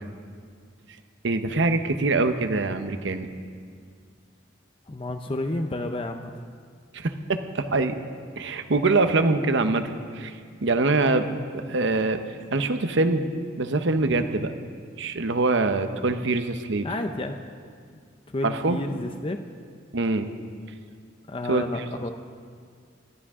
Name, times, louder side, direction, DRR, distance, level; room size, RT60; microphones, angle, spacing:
voice 1, 1.2-3.3 6.9-7.1 7.5-8.0 8.4-10.3 10.6-11.3 11.6-12.2 12.5-13.2 13.6-14.5 15.0-16.9 18.4-18.8 19.9-20.3 21.5-21.8, right 3 dB, 65° right, 8 dB, 0.9 m, -24 dB
voice 2, 4.9-6.3 11.1-11.4 16.8-17.4 18.3-19.4 21.3-22.1, left 2 dB, 30° left, 5 dB, 0.6 m, -31 dB
26.0 x 12.5 x 3.7 m, 2.1 s
head